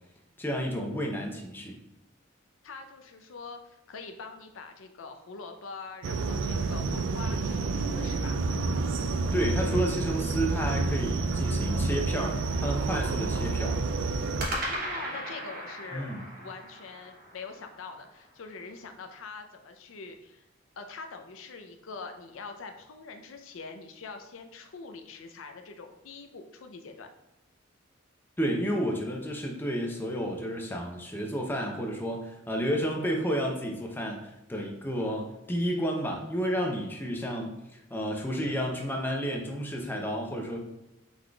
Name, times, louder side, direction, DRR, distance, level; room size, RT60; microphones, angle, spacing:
voice 1, 0.4-1.7 9.3-13.8 15.9-16.2 28.4-40.6, equal, 10° left, 0 dB, 0.5 m, -31 dB
voice 2, 2.6-8.4 14.5-20.4 20.8-27.1, left 4 dB, 75° left, 6 dB, 0.5 m, -44 dB
sound 1, 6.0-14.5, right 3 dB, 60° right, 0.3 m, -29 dB
sound 2, 6.9-8.6 14.4-18.7, right 1 dB, 45° right, 1.0 m, -39 dB
4.7 x 4.0 x 2.3 m, 0.93 s
head